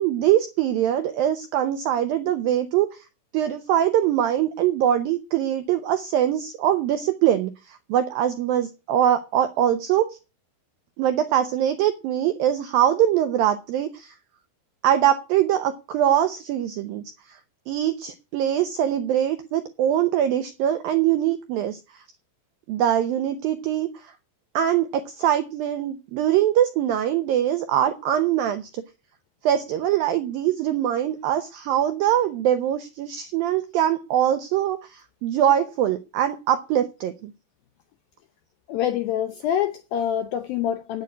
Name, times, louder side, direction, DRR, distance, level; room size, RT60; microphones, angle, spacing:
voice 1, 0.0-3.0 3.3-10.2 11.0-14.1 14.8-17.4 17.7-22.0 22.7-24.1 24.5-28.8 29.4-37.3, right 11 dB, 80° right, 2.0 m, -23 dB
voice 2, 38.7-41.0, left 10 dB, 80° left, 2.1 m, -26 dB
8.9 x 8.2 x 9.4 m
omnidirectional pair, 5.3 m